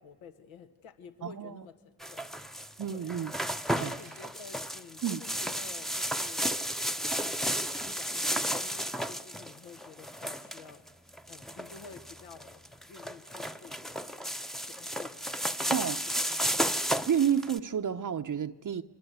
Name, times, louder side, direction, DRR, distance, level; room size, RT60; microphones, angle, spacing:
voice 1, 0.0-3.3 3.8-6.6 7.1-10.8 11.2-12.6 12.9-14.3 14.6-15.2 15.6-16.1, left 5 dB, 75° left, 1.9 m, -51 dB
voice 2, 1.2-1.6 2.8-3.3 3.8-3.9 5.0-5.2 15.7-16.0 17.1-18.8, right 8 dB, 40° right, 0.9 m, -30 dB
sound 1, 2.0-17.6, equal, ahead, 0.9 m, -33 dB
28.5 x 23.0 x 8.2 m
supercardioid pair, 55°, 48 cm